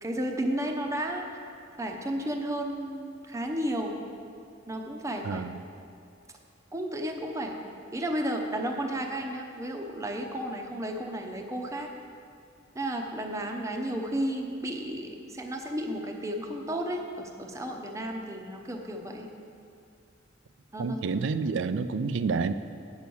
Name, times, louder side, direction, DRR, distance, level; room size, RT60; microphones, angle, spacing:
voice 1, 0.0-1.5 1.8-4.0 4.7-5.5 6.7-7.6 7.9-11.9 12.7-19.3 20.7-21.0, right 1 dB, 15° right, 2 dB, 0.8 m, -33 dB
voice 2, 5.2-5.6 20.8-22.5, right 4 dB, 65° right, 12 dB, 0.4 m, -29 dB
9.4 x 6.2 x 7.0 m, 2.4 s
head